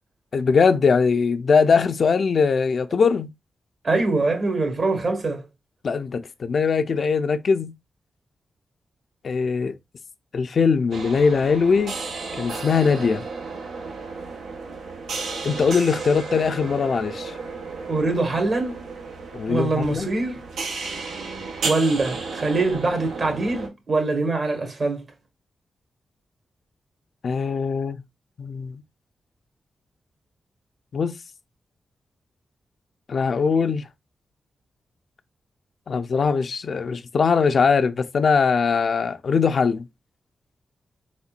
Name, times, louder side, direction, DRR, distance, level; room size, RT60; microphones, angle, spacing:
voice 1, 0.3-3.3 5.8-7.7 9.2-9.8 10.3-12.0 12.4-13.2 15.4-17.3 19.3-20.1 27.2-28.0 28.4-28.8 30.9-31.1 33.1-33.9 35.9-39.9, left 5 dB, 65° left, 0.5 m, -21 dB
voice 2, 3.8-5.4 17.9-18.8 19.5-20.4 21.6-25.0, right 3 dB, 55° right, 1.6 m, -23 dB
sound 1, 10.9-23.7, right 4 dB, 90° right, 0.9 m, -33 dB
4.2 x 4.2 x 2.4 m
cardioid pair, 65°, 0 cm